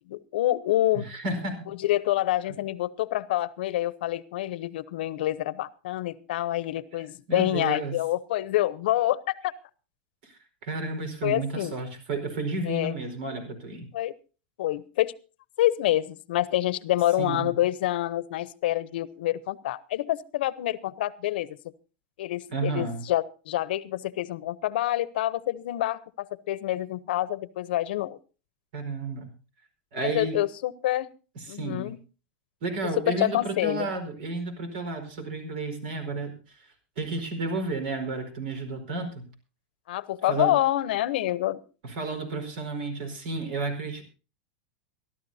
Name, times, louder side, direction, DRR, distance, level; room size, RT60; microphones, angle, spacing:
voice 1, 0.1-1.0 1.8-9.5 11.2-11.7 12.7-12.9 13.9-14.1 14.6-15.1 15.6-21.6 22.2-28.2 30.0-31.1 31.5-32.0 33.0-33.9 39.9-41.6, left 14 dB, 75° left, 18 dB, 0.8 m, -27 dB
voice 2, 0.9-1.7 6.9-7.0 7.3-8.0 10.2-13.9 17.2-17.6 22.5-23.1 28.7-29.3 29.9-30.4 31.3-31.9 32.6-39.3 40.2-40.6 41.8-44.0, right 3 dB, 70° right, 8 dB, 4.9 m, -32 dB
23.5 x 12.5 x 2.7 m, 0.34 s
supercardioid pair, 140°, 5 cm